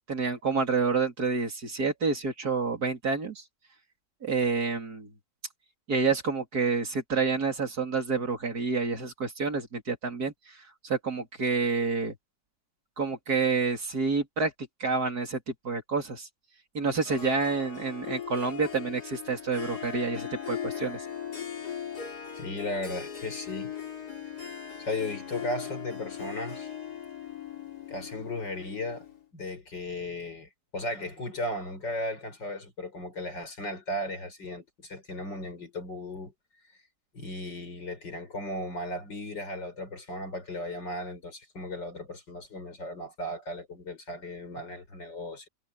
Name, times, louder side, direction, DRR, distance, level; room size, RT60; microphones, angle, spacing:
voice 1, 0.1-3.4 4.2-5.1 5.9-10.3 10.8-12.1 13.0-14.5 14.8-16.3 16.7-21.0, right 4 dB, 60° right, 3.8 m, -28 dB
Harp, 17.0-29.2, left 8 dB, 60° left, 3.5 m, -39 dB
voice 2, 22.4-23.7 24.8-26.7 27.9-29.1 29.3-36.3 37.1-45.5, left 1 dB, 85° left, 6.3 m, -36 dB
omnidirectional pair, 1.9 m